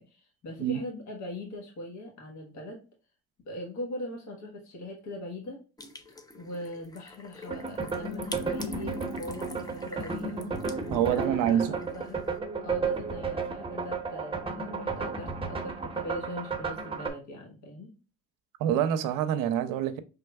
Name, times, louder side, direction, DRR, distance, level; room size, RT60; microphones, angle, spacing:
voice 1, 0.0-2.8 3.4-5.6 6.3-10.6 11.1-12.2 12.6-17.9, left 1 dB, 60° left, 1.4 m, -41 dB
sound 1, 5.8-12.4, left 2 dB, 10° left, 0.5 m, -47 dB
sound 2, 7.5-17.1, right 4 dB, 15° right, 0.8 m, -33 dB
voice 2, 10.9-11.8 18.6-20.0, right 10 dB, 80° right, 0.6 m, -26 dB
4.3 x 3.5 x 2.3 m
supercardioid pair, 80°, 32 cm